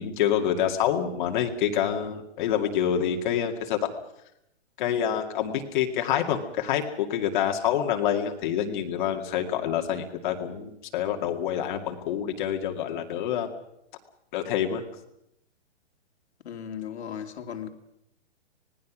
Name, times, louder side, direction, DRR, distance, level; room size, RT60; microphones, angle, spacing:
voice 1, 0.0-3.9 4.8-13.5 14.3-14.8, left 9 dB, 45° left, 2.2 m, -27 dB
voice 2, 16.4-17.7, left 8 dB, 70° left, 2.8 m, -36 dB
25.5 x 19.0 x 6.2 m
hypercardioid pair, 150°, 35 cm